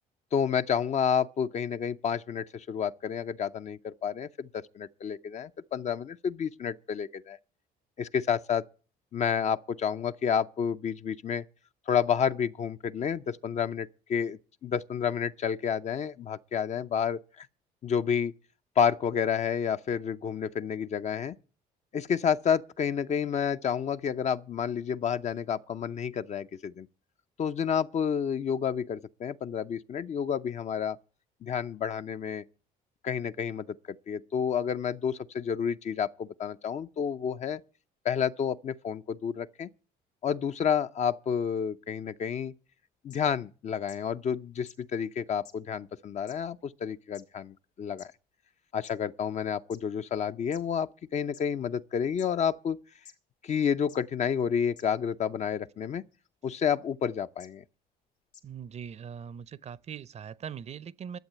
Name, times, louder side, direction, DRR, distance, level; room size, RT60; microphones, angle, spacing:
voice 1, 0.3-7.4 8.0-8.6 9.1-11.4 11.9-17.5 17.8-18.3 18.8-21.4 21.9-26.9 27.4-31.0 31.4-32.4 33.0-37.6 38.0-39.7 40.2-42.5 43.0-48.1 48.7-52.8 53.4-56.0 56.4-57.6, left 7 dB, 45° left, 0.6 m, -30 dB
sound 1, 43.1-43.2 43.9-44.0 44.7-44.8 45.4-45.5 46.3-46.4 47.1-47.2 48.0-48.1 48.8-48.9 49.7-49.8 50.5-50.6 51.3-51.4 52.2-52.3 53.0-53.1 53.9-54.0 54.8-54.9 56.1-56.3 57.4-57.5 58.3-58.4, left 8 dB, 75° left, 2.3 m, -50 dB
voice 2, 58.4-61.2, right 8 dB, 40° right, 0.6 m, -41 dB
12.0 x 7.5 x 9.3 m
cardioid pair, 110°, 17 cm